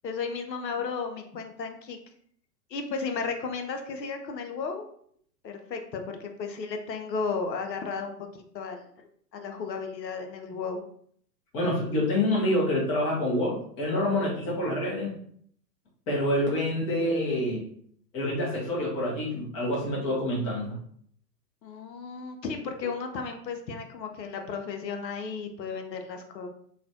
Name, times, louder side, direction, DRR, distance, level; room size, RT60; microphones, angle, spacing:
voice 1, 0.0-2.0 2.7-4.8 5.4-9.1 9.3-10.8 21.6-26.5, left 5 dB, 80° left, 5 dB, 0.7 m, -34 dB
voice 2, 11.5-15.1 16.1-17.6 18.1-20.7, left 1 dB, 15° left, -5 dB, 0.4 m, -27 dB
3.1 x 2.1 x 2.6 m, 0.62 s
hypercardioid pair, 115°, 50 cm